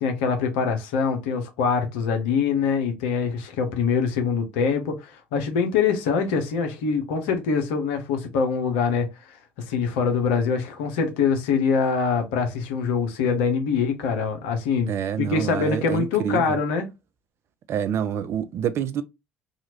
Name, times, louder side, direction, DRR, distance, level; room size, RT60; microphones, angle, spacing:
voice 1, 0.0-9.4 9.7-14.9 15.3-16.9, left 5 dB, 70° left, 0.7 m, -24 dB
voice 2, 14.9-16.6 17.7-19.0, right 8 dB, 50° right, 0.4 m, -27 dB
2.8 x 2.3 x 2.9 m
hypercardioid pair, 60°, 6 cm